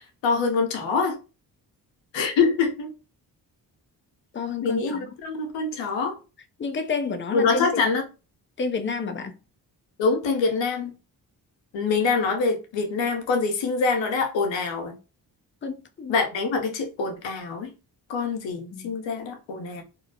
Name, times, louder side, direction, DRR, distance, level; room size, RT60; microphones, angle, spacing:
voice 1, 0.2-1.2 2.1-2.9 4.6-6.2 7.3-8.0 10.0-10.9 11.7-15.0 16.1-17.7 18.1-19.8, left 4 dB, 80° left, 0.8 m, -25 dB
voice 2, 4.3-5.1 6.6-7.8 8.6-9.3 15.6-16.2 18.7-19.0, left 4 dB, 30° left, 0.4 m, -30 dB
2.6 x 2.0 x 2.7 m
cardioid pair, 55°, 44 cm